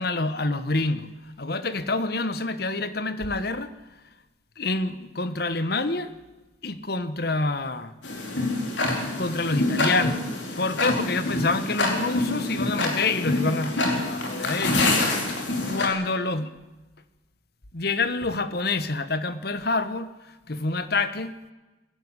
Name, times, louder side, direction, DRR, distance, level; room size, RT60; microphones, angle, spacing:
voice 1, 0.0-3.7 4.6-6.1 6.6-7.9 9.2-10.2 10.6-15.0 15.7-16.6 17.7-20.1 20.5-21.3, left 3 dB, 55° left, 1.2 m, -27 dB
Tick-tock, 8.0-15.9, left 2 dB, 75° left, 4.4 m, -26 dB
22.5 x 12.5 x 9.8 m
head